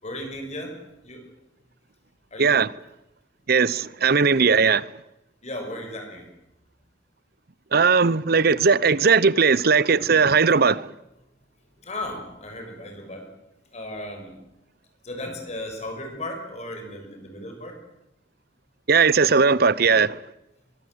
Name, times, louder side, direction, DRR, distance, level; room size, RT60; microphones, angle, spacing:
voice 1, 0.0-0.7 1.0-1.2 2.3-2.6 5.4-6.2 11.8-13.2 13.7-14.3 15.0-17.7, left 1 dB, 35° left, 6.4 m, -35 dB
voice 2, 3.5-4.8 7.7-10.8 18.9-20.1, right 5 dB, 55° right, 0.8 m, -18 dB
23.0 x 23.0 x 8.0 m
head